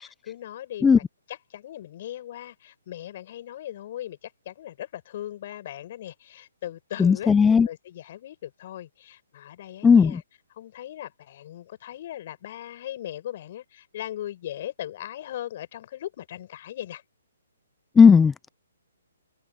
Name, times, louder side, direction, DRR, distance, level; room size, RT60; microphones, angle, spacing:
voice 1, 0.0-7.4 7.6-10.2 10.6-17.0, left 12 dB, 45° left, 7.5 m, -38 dB
voice 2, 7.0-7.7 9.8-10.2 18.0-18.5, left 6 dB, 10° left, 0.3 m, -15 dB
hypercardioid pair, 140°, 0 cm